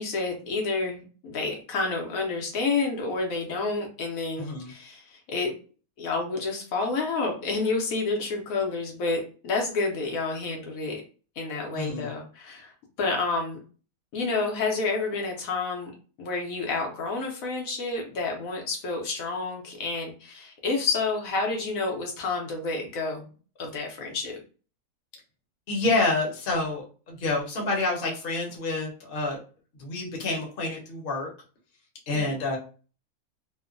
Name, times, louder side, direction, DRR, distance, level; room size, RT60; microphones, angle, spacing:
voice 1, 0.0-5.5 6.0-11.0 11.4-12.7 13.0-13.6 14.1-23.3 23.6-24.4 32.1-32.3, left 3 dB, 75° left, 1 dB, 1.1 m, -29 dB
voice 2, 4.4-4.7 11.7-12.1 25.7-29.4 29.8-31.3 32.1-32.6, left 2 dB, 45° left, -1 dB, 0.9 m, -28 dB
2.9 x 2.1 x 2.4 m, 0.37 s
omnidirectional pair, 1.5 m